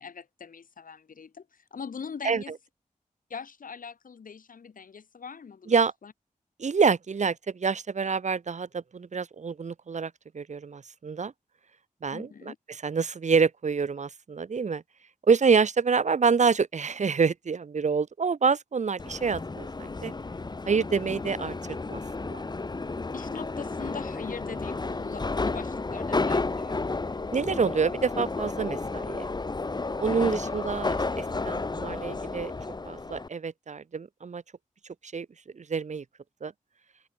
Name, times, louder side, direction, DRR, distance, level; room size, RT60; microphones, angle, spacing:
voice 1, 0.0-2.6 3.3-6.1 12.1-12.6 23.1-26.8 30.4-30.5, left 6 dB, 85° left, 6.4 m, -42 dB
voice 2, 6.6-11.3 12.0-12.5 12.8-14.8 15.3-20.1 20.7-21.5 21.8-22.4 27.3-29.2 30.0-32.5 32.8-34.4 35.1-35.3 35.5-36.0 36.4-36.5, right 5 dB, 60° right, 1.6 m, -27 dB
Subway metro underground, 19.0-33.3, left 3 dB, 30° left, 1.8 m, -32 dB
open air
wide cardioid pair, 140°, 14 cm